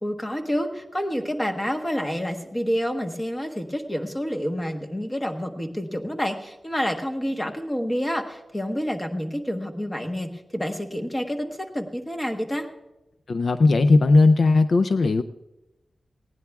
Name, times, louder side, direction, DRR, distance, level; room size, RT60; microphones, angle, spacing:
voice 1, 0.0-12.7, equal, 15° left, 4 dB, 1.2 m, -28 dB
voice 2, 13.3-15.2, left 3 dB, 55° left, 11 dB, 0.4 m, -17 dB
19.5 x 16.5 x 2.4 m, 0.97 s
wide cardioid pair, 165°, 0 cm